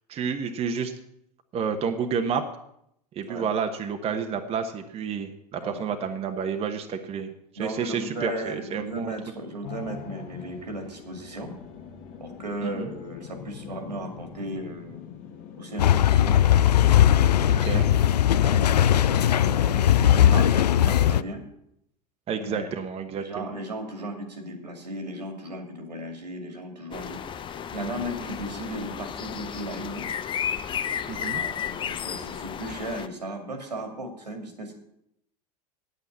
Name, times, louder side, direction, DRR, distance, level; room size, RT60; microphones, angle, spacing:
voice 1, 0.1-0.9 1.5-2.4 3.1-9.1 12.6-12.9 17.4-17.8 22.3-23.5 31.1-31.4, right 6 dB, 30° right, 5 dB, 1.1 m, -30 dB
voice 2, 7.6-11.5 12.2-15.1 15.6-16.4 17.3-21.4 22.4-22.7 23.2-27.2 27.7-30.2 31.3-34.7, right 1 dB, 85° right, 5 dB, 2.3 m, -36 dB
sound 1, 9.6-19.3, left 8 dB, 45° left, 1.5 m, -43 dB
sound 2, 15.8-21.2, left 11 dB, 80° left, 0.4 m, -19 dB
sound 3, 26.9-33.1, left 8 dB, 25° left, 0.6 m, -33 dB
9.2 x 8.5 x 7.3 m, 0.75 s
figure-of-eight pair, 85°, 20 cm